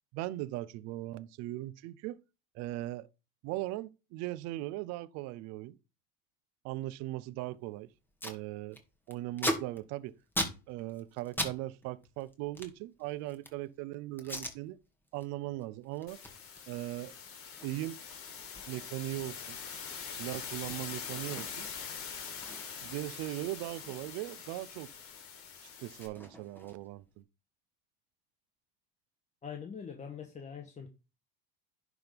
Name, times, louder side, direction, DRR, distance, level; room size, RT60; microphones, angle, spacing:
voice 1, 0.1-2.2 2.5-3.1 3.4-5.8 6.6-7.9 8.2-8.8 9.1-10.2 10.7-14.8 15.1-16.2 16.7-17.1 17.6-18.0 18.7-19.6 20.1-21.7 22.8-24.9 25.8-27.2, right 16 dB, 60° right, 0.7 m, -39 dB
Packing tape duct tape, 7.7-7.8 7.9-8.4 8.7-11.6 11.8-13.7 14.2-14.6 15.0-15.3 15.6-21.8 22.1-22.2 22.4-24.8 25.1-27.0, equal, 5° left, 2.1 m, -40 dB
sound 1, 16.1-26.1, left 7 dB, 45° left, 2.7 m, -44 dB
voice 2, 29.4-30.9, left 7 dB, 25° left, 1.2 m, -43 dB
11.0 x 3.9 x 5.1 m
supercardioid pair, 105°, 30 cm